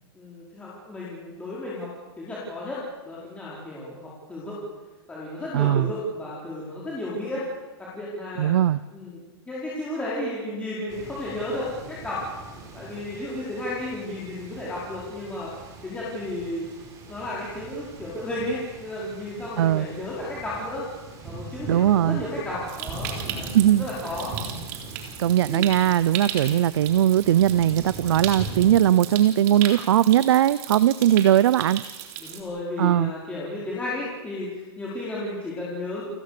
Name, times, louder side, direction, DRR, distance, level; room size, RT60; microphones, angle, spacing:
voice 1, 0.1-1.9 2.2-4.6 5.1-7.5 7.8-8.5 8.9-9.2 9.5-12.2 12.7-15.5 15.8-16.7 17.1-20.9 21.2-23.5 23.8-24.3 25.4-25.7 26.3-26.7 31.1-31.2 32.2-36.0, left 1 dB, 10° left, -7 dB, 5.0 m, -33 dB
voice 2, 5.5-5.9 8.4-8.8 19.6-19.9 21.7-22.2 23.5-23.9 25.2-31.8 32.8-33.1, right 11 dB, 75° right, 17 dB, 0.7 m, -19 dB
sound 1, 10.9-28.7, right 2 dB, 25° right, 5.1 m, -41 dB
Stream, 22.7-32.4, right 9 dB, 40° right, 3.8 m, -36 dB
30.0 x 19.5 x 6.9 m, 1.2 s
supercardioid pair, 155°, 14 cm